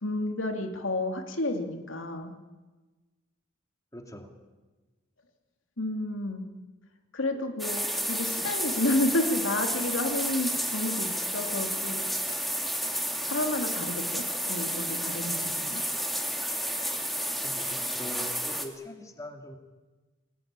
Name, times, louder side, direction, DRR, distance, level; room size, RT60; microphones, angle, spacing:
voice 1, 0.0-2.3 5.8-6.4 7.1-12.1 12.4-12.5 13.3-15.8, left 2 dB, 75° left, 5 dB, 2.6 m, -31 dB
voice 2, 3.9-4.4 17.4-19.6, left 1 dB, 15° left, 4 dB, 2.4 m, -42 dB
sound 1, 7.6-18.7, equal, ahead, 2.4 m, -31 dB
27.5 x 19.0 x 9.0 m, 1.2 s
head